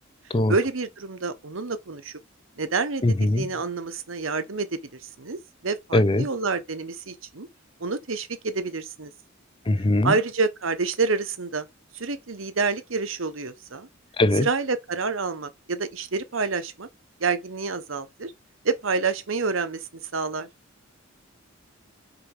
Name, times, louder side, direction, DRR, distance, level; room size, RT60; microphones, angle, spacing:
voice 1, 0.5-2.1 2.6-4.8 5.2-5.4 5.6-7.5 7.8-9.1 10.0-11.7 11.9-13.9 14.4-16.9 17.2-18.3 18.6-19.9 20.1-20.5, right 4 dB, 70° right, 1.1 m, -28 dB
voice 2, 3.0-3.4 5.9-6.3 9.7-10.1 14.2-14.5, left 1 dB, 25° left, 0.5 m, -20 dB
4.9 x 4.8 x 4.9 m
head